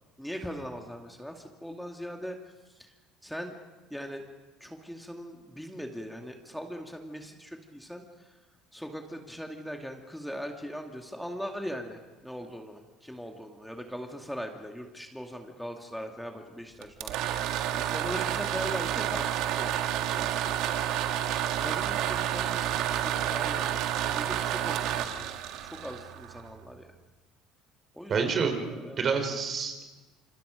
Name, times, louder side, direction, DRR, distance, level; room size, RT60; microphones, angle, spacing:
voice 1, 0.2-2.4 2.7-2.9 3.2-3.5 3.9-4.2 4.6-8.4 8.7-19.7 20.1-20.3 21.6-26.9 27.9-29.1, equal, ahead, 3 dB, 2.4 m, -40 dB
sound 1, 16.8-26.6, right 11 dB, 65° right, 1.6 m, -30 dB
voice 2, 28.1-28.6 29.0-29.8, right 5 dB, 45° right, 6 dB, 4.1 m, -27 dB
28.0 x 25.5 x 5.2 m, 1.2 s
hypercardioid pair, 70°, 0 cm